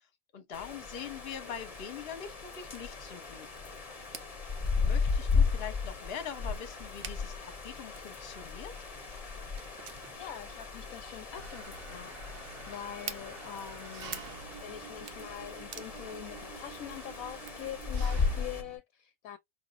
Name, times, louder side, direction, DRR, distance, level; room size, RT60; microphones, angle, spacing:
voice 1, 0.3-3.5 4.8-8.7, left 8 dB, 45° left, 1.0 m, -43 dB
sound 1, 0.5-18.6, left 5 dB, 30° left, 0.8 m, -35 dB
sound 2, 1.5-17.6, right 7 dB, 55° right, 0.9 m, -51 dB
voice 2, 10.1-14.2 14.6-19.4, left 11 dB, 70° left, 0.9 m, -44 dB
Engine, 11.4-18.8, right 5 dB, 90° right, 1.6 m, -48 dB
5.3 x 2.9 x 2.5 m
omnidirectional pair, 1.6 m